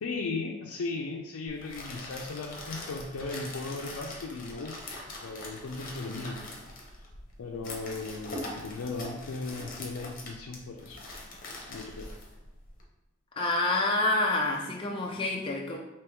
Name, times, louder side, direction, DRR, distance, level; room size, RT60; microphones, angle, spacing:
voice 1, 0.0-4.8 5.2-6.4 7.4-11.0 11.7-12.1, left 3 dB, 85° left, 0 dB, 0.4 m, -37 dB
sound 1, 1.5-12.8, left 2 dB, 40° left, 0.9 m, -42 dB
voice 2, 13.4-15.8, left 2 dB, 25° left, -2 dB, 0.4 m, -27 dB
3.5 x 3.0 x 4.6 m, 1.0 s
head